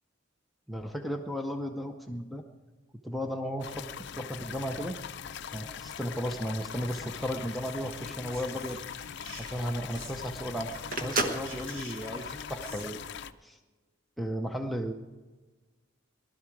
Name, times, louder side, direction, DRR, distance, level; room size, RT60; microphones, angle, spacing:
voice 1, 0.7-2.4 3.0-3.9 4.2-5.0 5.5-8.8 9.4-13.0 13.4-13.6 14.2-14.9, equal, ahead, 2 dB, 0.6 m, -35 dB
sound 1, 3.6-13.3, left 8 dB, 60° left, 0.5 m, -41 dB
Whispering, 6.8-10.4 10.6-12.9, right 1 dB, 75° right, 3.9 m, -50 dB
Telephone, 8.1-13.2, right 3 dB, 45° right, 1.2 m, -35 dB
19.0 x 12.0 x 4.6 m, 1.3 s
head